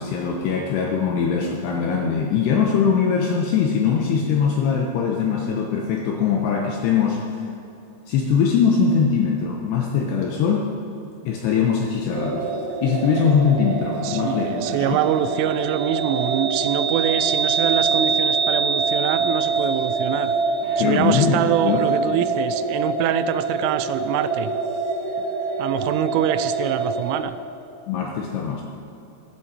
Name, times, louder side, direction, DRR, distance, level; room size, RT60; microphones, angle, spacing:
voice 1, 0.0-7.2 8.1-10.7 11.3-12.5 12.8-15.0 20.8-21.8 27.9-28.6, left 6 dB, 80° left, 1 dB, 2.6 m, -21 dB
sound 1, 12.1-27.2, right 4 dB, 70° right, 2.5 m, -24 dB
voice 2, 14.0-20.3 20.8-24.5 25.6-27.4, right 11 dB, 85° right, 12 dB, 3.0 m, -25 dB
sound 2, 20.6-22.5 22.8-22.9, left 1 dB, 45° left, 2.0 m, -41 dB
13.5 x 13.0 x 4.2 m, 2.7 s
omnidirectional pair, 5.7 m